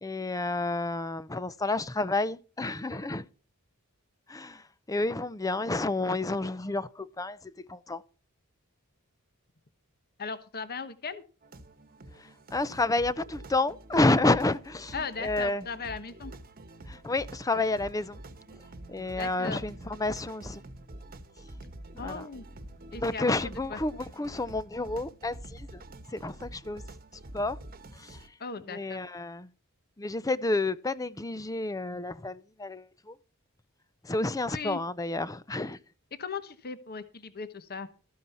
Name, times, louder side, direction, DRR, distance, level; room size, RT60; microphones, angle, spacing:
voice 1, 0.0-3.3 4.3-4.6 4.9-8.0 12.5-14.9 15.2-15.6 16.9-18.2 18.9-20.6 22.0-22.2 22.9-25.7 26.1-26.8 27.3-27.6 27.9-28.2 28.7-29.5 30.0-33.1 34.0-35.8, left 2 dB, 15° left, 0.5 m, -30 dB
voice 2, 10.2-11.2 14.9-16.3 19.2-19.6 22.0-22.5 22.9-23.8 28.4-29.0 34.5-34.8 36.2-37.9, left 5 dB, 45° left, 1.1 m, -38 dB
sound 1, 11.4-28.3, right 1 dB, 40° right, 1.2 m, -47 dB
13.5 x 9.4 x 4.3 m
head